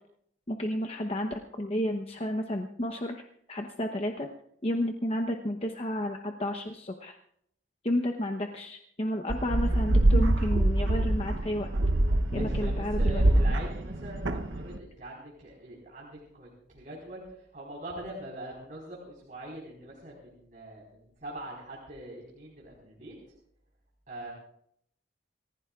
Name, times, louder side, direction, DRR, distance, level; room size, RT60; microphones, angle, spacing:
voice 1, 0.5-3.2 3.5-4.3 4.6-7.2 7.8-11.7 12.3-13.2, left 1 dB, 35° left, 4 dB, 0.9 m, -31 dB
sound 1, 9.3-14.8, right 1 dB, 80° right, 0.9 m, -25 dB
voice 2, 12.3-23.1 24.1-24.3, right 1 dB, 45° right, -5 dB, 4.6 m, -43 dB
28.0 x 16.0 x 2.5 m, 0.70 s
head